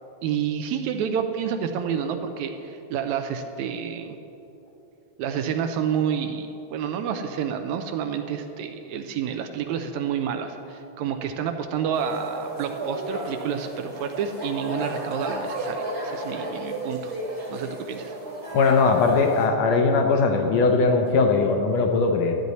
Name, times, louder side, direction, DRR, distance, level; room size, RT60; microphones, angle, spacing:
voice 1, 0.2-4.2 5.2-17.2 17.5-18.1, right 7 dB, 80° right, 6 dB, 1.8 m, -29 dB
sound 1, 11.9-19.5, right 1 dB, 30° right, 1.3 m, -33 dB
voice 2, 18.5-22.3, left 4 dB, 70° left, 3 dB, 1.7 m, -20 dB
13.0 x 9.4 x 4.1 m, 2.9 s
omnidirectional pair, 3.5 m